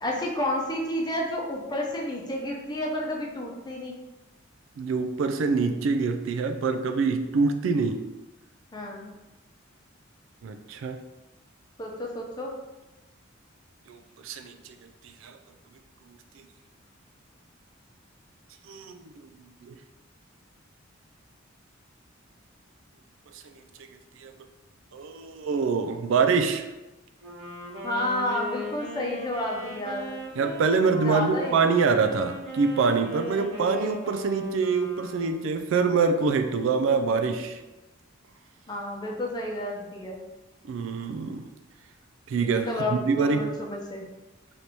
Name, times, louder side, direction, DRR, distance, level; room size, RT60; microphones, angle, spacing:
voice 1, 0.0-4.0 8.7-9.1 11.8-12.5 27.8-30.1 30.8-31.6 38.7-40.2 42.7-44.0, left 1 dB, 20° left, -1 dB, 0.7 m, -31 dB
voice 2, 4.8-8.1 10.4-11.0 13.9-14.7 15.2-15.4 18.7-19.1 19.5-19.8 23.3-23.4 24.2-24.3 24.9-26.7 30.3-37.6 40.6-41.5 42.3-43.5, right 4 dB, 70° right, 7 dB, 0.3 m, -25 dB
Wind instrument woodwind instrument, 27.2-35.8, left 1 dB, 90° right, 1.3 m, -38 dB
3.3 x 2.9 x 4.1 m, 1.1 s
head